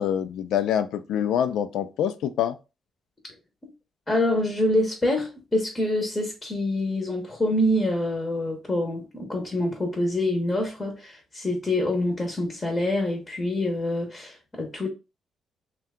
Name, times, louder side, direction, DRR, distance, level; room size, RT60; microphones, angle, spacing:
voice 1, 0.0-2.6, left 9 dB, 85° left, 0.3 m, -25 dB
voice 2, 4.1-14.9, left 1 dB, 20° left, 0.8 m, -26 dB
2.7 x 2.2 x 3.5 m
cardioid pair, 110°, 0 cm